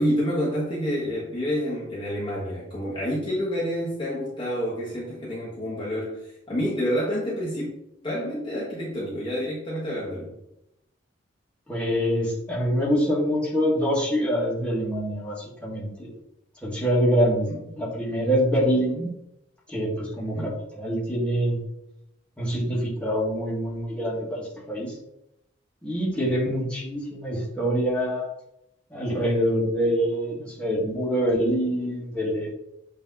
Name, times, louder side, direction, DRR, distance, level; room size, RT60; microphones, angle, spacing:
voice 1, 0.0-7.7 8.0-10.3 17.5-17.6 20.2-20.6 26.4-26.5, equal, 25° left, -7 dB, 1.5 m, -28 dB
voice 2, 11.7-16.1 16.6-19.1 19.7-20.5 20.8-21.6 22.4-24.9 25.8-28.3 28.9-32.5, equal, 5° left, -7 dB, 1.9 m, -25 dB
8.2 x 3.5 x 4.0 m, 0.83 s
head